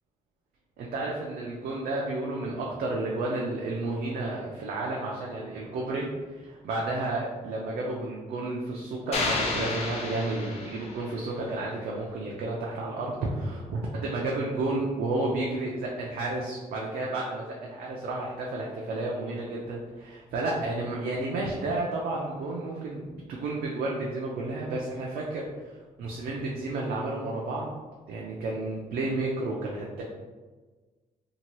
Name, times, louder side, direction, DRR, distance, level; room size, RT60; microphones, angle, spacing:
voice 1, 0.8-6.1 6.3-27.7 28.1-30.0, right 2 dB, 80° right, -3 dB, 0.4 m, -31 dB
sound 1, 9.1-11.3, left 3 dB, 45° left, 0.4 m, -31 dB
2.8 x 2.2 x 2.9 m, 1.3 s
cardioid pair, 180°, 15 cm